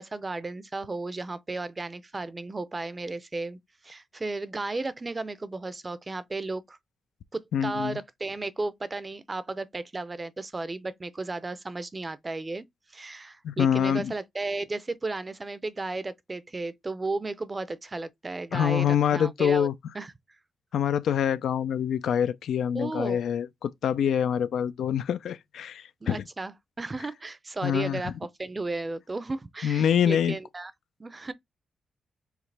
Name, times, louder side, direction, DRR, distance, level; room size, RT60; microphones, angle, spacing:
voice 1, 0.0-3.6 3.8-6.8 7.3-12.7 12.9-19.7 19.9-20.1 22.7-23.2 26.0-30.7 31.0-31.3, right 3 dB, 25° right, 0.5 m, -34 dB
voice 2, 7.5-8.0 13.4-14.1 18.5-19.7 20.7-26.2 27.6-28.1 29.6-30.4, left 9 dB, 80° left, 0.4 m, -25 dB
4.9 x 3.1 x 3.3 m
cardioid pair, 95°, 0 cm